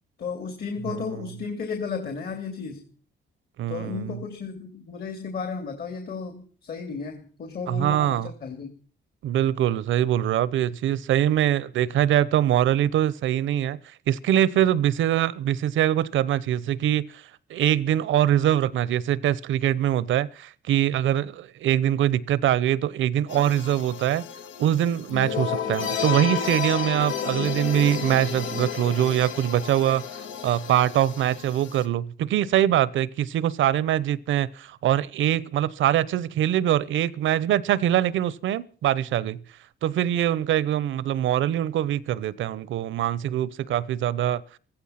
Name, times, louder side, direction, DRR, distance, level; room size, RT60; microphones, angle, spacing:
voice 1, 0.2-2.8 3.7-8.7, left 5 dB, 50° left, 3.0 m, -34 dB
voice 2, 0.9-1.3 3.6-4.2 7.7-8.3 9.2-13.8 14.1-17.2 17.5-24.2 24.6-30.0 30.4-39.4 39.8-44.4, right 11 dB, 75° right, 0.9 m, -23 dB
sound 1, 23.3-31.8, left 7 dB, 80° left, 1.8 m, -32 dB
15.5 x 15.0 x 5.9 m
cardioid pair, 90°, 20 cm